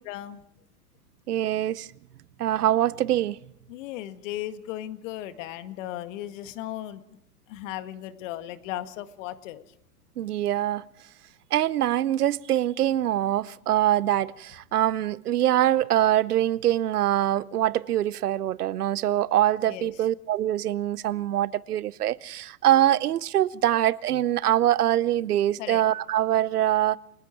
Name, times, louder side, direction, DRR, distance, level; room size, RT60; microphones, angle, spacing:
voice 1, 0.1-0.4 3.7-7.0 7.5-9.6 19.7-20.1 25.6-25.8, left 13 dB, 55° left, 1.9 m, -36 dB
voice 2, 1.3-1.9 2.4-3.4 10.2-10.8 11.5-27.0, right 12 dB, 80° right, 0.9 m, -24 dB
29.5 x 19.5 x 4.6 m
hypercardioid pair, 110°, 45 cm